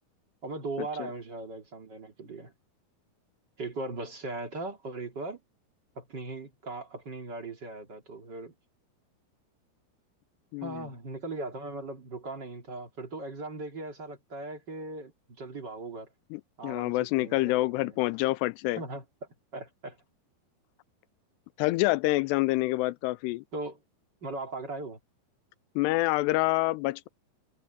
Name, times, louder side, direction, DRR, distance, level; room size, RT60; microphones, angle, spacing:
voice 1, 0.4-2.5 3.6-5.4 5.9-8.5 10.6-16.1 16.6-18.0 18.8-19.0 19.5-20.0 23.5-23.8 24.2-25.0, right 2 dB, 30° right, 2.4 m, -39 dB
voice 2, 10.5-10.8 16.3-18.8 21.6-23.4 25.8-27.1, left 19 dB, 85° left, 2.6 m, -27 dB
omnidirectional pair, 4.9 m